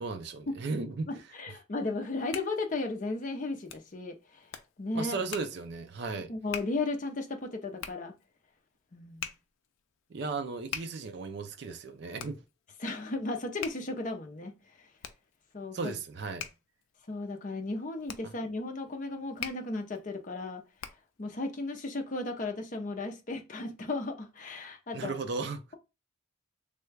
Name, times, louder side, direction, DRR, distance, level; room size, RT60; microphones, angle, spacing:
voice 1, 0.0-1.1 4.9-6.3 10.1-12.4 15.7-16.5 18.2-18.3 24.9-25.6, right 4 dB, 55° right, 0.4 m, -35 dB
voice 2, 1.1-4.5 4.8-5.1 6.3-8.1 8.9-9.3 12.8-14.5 15.5-15.8 17.1-20.6 21.2-25.1, left 2 dB, 40° left, 0.5 m, -35 dB
Hands, 1.9-21.2, left 8 dB, 90° left, 0.4 m, -46 dB
3.3 x 2.2 x 3.2 m
head